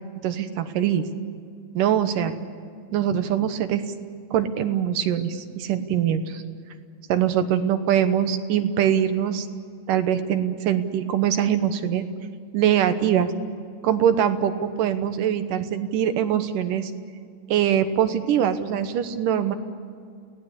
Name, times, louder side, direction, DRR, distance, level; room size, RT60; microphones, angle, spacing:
voice 1, 0.2-1.0 1.7-2.3 2.9-3.8 4.3-6.4 7.1-9.5 9.9-12.1 12.5-13.3 13.8-16.9 17.5-19.5, right 9 dB, 75° right, 9 dB, 2.6 m, -23 dB
28.5 x 18.0 x 8.3 m, 2.3 s
omnidirectional pair, 4.0 m